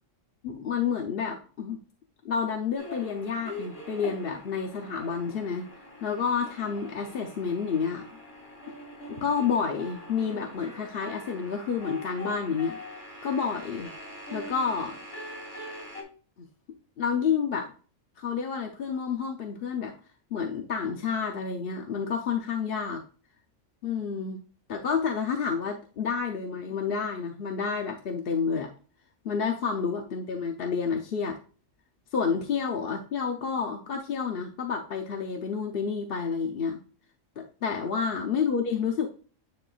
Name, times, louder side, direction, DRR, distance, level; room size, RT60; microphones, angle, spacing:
voice 1, 0.4-1.8 2.2-5.7 6.0-8.1 9.0-12.8 13.2-13.9 14.3-15.0 17.0-17.7 18.2-19.9 20.3-23.0 23.8-24.4 24.7-28.7 29.2-31.4 32.1-36.8 37.4-39.1, left 6 dB, 55° left, 3 dB, 0.8 m, -29 dB
sound 1, 2.8-16.0, left 1 dB, 30° left, 2.3 m, -43 dB
9.8 x 4.2 x 2.3 m, 0.39 s
omnidirectional pair, 1.3 m